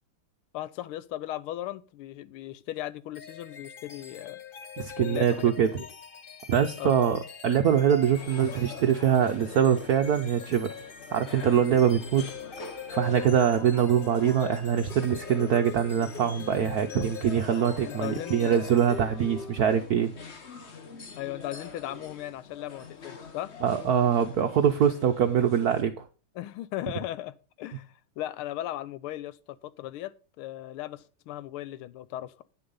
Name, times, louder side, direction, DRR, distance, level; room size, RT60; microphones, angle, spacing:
voice 1, 0.5-4.4 5.0-5.9 6.8-7.1 17.8-18.7 19.2-19.3 21.2-23.5 26.3-32.3, left 14 dB, 80° left, 1.5 m, -37 dB
sound 1, 3.1-19.8, left 6 dB, 60° left, 0.5 m, -43 dB
voice 2, 4.8-5.8 6.5-10.7 11.1-12.3 12.9-20.1 23.6-26.0, right 8 dB, 75° right, 0.8 m, -24 dB
sound 2, 8.2-25.8, left 5 dB, 40° left, 1.1 m, -45 dB
9.6 x 6.9 x 5.4 m
omnidirectional pair, 2.4 m